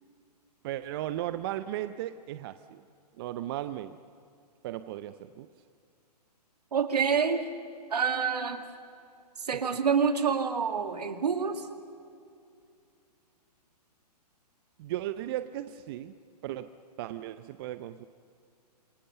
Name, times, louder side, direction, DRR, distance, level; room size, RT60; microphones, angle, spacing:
voice 1, 0.6-2.8 3.2-4.0 4.6-5.5 14.8-16.1 16.4-16.7 17.0-18.1, right 13 dB, 35° right, 11 dB, 0.7 m, -36 dB
voice 2, 6.7-7.5 7.9-8.6 9.4-11.7, right 6 dB, 70° right, 7 dB, 2.2 m, -27 dB
27.5 x 22.5 x 6.8 m, 2.4 s
hypercardioid pair, 130°, 21 cm